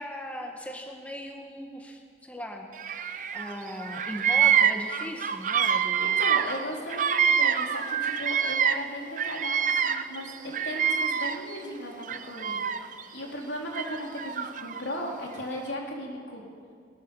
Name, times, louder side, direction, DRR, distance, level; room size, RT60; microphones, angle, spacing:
voice 1, 0.0-6.2, equal, 10° left, 2 dB, 1.6 m, -39 dB
Bird vocalization bird call bird song, 2.8-3.5 3.8-8.9 9.2-11.6 12.0-13.0 13.7-14.8, right 8 dB, 45° right, 0.7 m, -26 dB
voice 2, 6.0-16.4, equal, 85° left, -1 dB, 4.2 m, -37 dB
20.5 x 19.5 x 7.2 m, 2.1 s
head